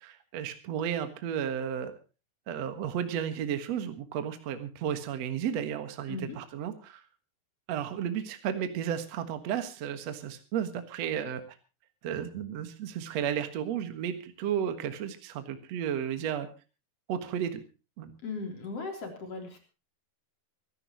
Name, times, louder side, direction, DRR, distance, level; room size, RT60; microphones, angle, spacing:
voice 1, 0.0-1.9 2.5-7.0 7.7-11.4 12.0-16.5 17.1-17.6 18.0-18.1, right 9 dB, 55° right, 8 dB, 2.1 m, -33 dB
voice 2, 6.1-6.4 18.2-19.6, left 4 dB, 35° left, 3 dB, 4.3 m, -37 dB
24.5 x 12.5 x 3.0 m, 0.32 s
omnidirectional pair, 4.8 m